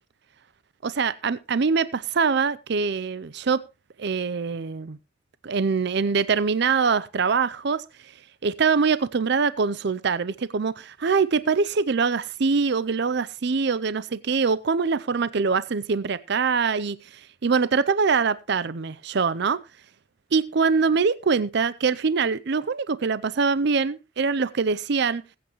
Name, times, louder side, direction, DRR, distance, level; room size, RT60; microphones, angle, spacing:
voice 1, 0.8-3.6 4.0-5.0 5.4-7.8 8.4-17.0 17.4-19.6 20.3-25.2, right 5 dB, 60° right, 0.5 m, -23 dB
20.5 x 8.6 x 3.0 m
head